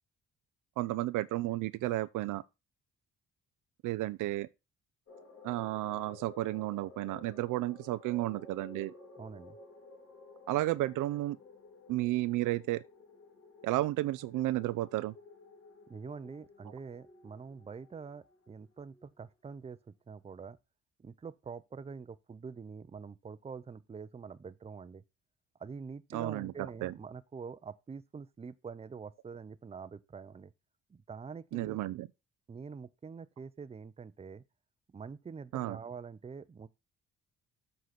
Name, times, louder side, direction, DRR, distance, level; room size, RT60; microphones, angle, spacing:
voice 1, 0.8-2.4 3.8-4.5 5.4-8.9 10.5-11.4 11.9-12.8 13.6-15.1 26.1-26.5 26.8-26.9 31.5-32.1 35.5-35.8, right 16 dB, 85° right, 0.6 m, -32 dB
sound 1, 5.1-19.6, left 2 dB, 50° left, 3.5 m, -55 dB
voice 2, 9.2-9.6 15.9-20.6 21.0-25.0 25.6-30.5 30.9-31.8 32.5-34.4 34.9-36.7, right 5 dB, 20° right, 0.6 m, -45 dB
7.7 x 4.0 x 5.8 m
cardioid pair, 90°, 30 cm